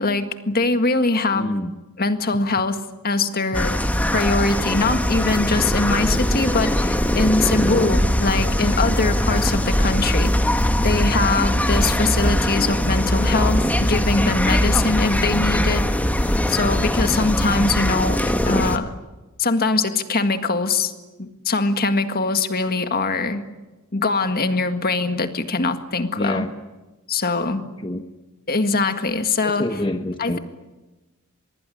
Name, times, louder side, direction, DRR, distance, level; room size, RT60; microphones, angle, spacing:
voice 1, 0.0-1.5 2.0-3.8 4.1-10.3 10.8-15.8 16.5-18.9 19.4-20.9 21.2-23.4 23.9-26.5 27.1-27.6 28.5-29.7 30.2-30.4, left 3 dB, 45° left, 8 dB, 1.8 m, -22 dB
voice 2, 1.3-1.7 26.2-26.5 27.8-28.0 29.4-30.4, left 1 dB, 25° left, 6 dB, 1.1 m, -26 dB
sound 1, 3.5-18.8, equal, 5° left, 1.4 m, -21 dB
25.5 x 21.5 x 9.9 m, 1.1 s
head